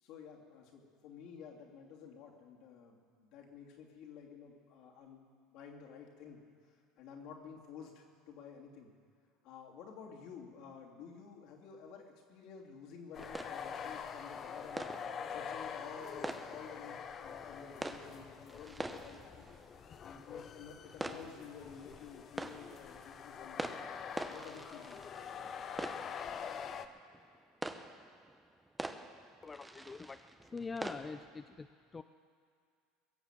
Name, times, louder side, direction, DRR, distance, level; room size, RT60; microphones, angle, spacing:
voice 1, 0.0-5.2 5.5-6.4 6.6-8.9 9.4-14.9 15.3-19.5 20.0-23.7 24.2-25.1, left 6 dB, 65° left, -1 dB, 2.9 m, -52 dB
sound 1, 13.1-26.9, left 7 dB, 40° left, 0.8 m, -45 dB
sound 2, 13.2-31.3, right 2 dB, 10° right, 0.8 m, -46 dB
voice 2, 29.4-30.2 30.5-31.7 31.9-32.0, left 4 dB, 20° left, 9 dB, 0.5 m, -43 dB
22.0 x 7.4 x 7.4 m, 2.2 s
supercardioid pair, 95°, 0 cm